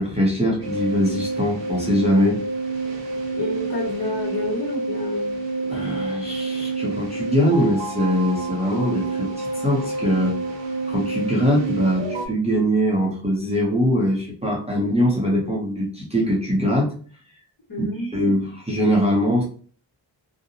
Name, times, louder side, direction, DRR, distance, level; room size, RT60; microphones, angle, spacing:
voice 1, 0.0-2.4 5.7-10.4 10.9-16.9 18.1-19.4, equal, 15° right, -4 dB, 0.6 m, -22 dB
sound 1, 0.6-12.3, right 3 dB, 70° right, 0.7 m, -28 dB
voice 2, 3.3-5.3 17.7-18.4, left 2 dB, 55° left, -2 dB, 1.3 m, -29 dB
2.7 x 2.0 x 2.7 m, 0.42 s
wide cardioid pair, 95°, 45 cm